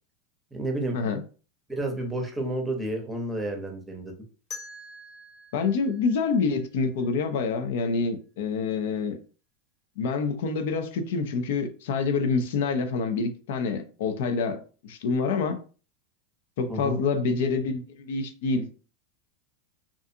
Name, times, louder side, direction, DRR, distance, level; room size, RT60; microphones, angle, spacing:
voice 1, 0.5-1.0 1.7-4.2 16.7-17.0, right 1 dB, 10° right, 0.7 m, -30 dB
sound 1, 4.5-7.4, left 3 dB, 35° left, 1.0 m, -45 dB
voice 2, 5.5-9.2 10.0-15.6 16.6-18.7, left 4 dB, 70° left, 0.5 m, -27 dB
2.5 x 2.3 x 2.6 m
hypercardioid pair, 110°, 0 cm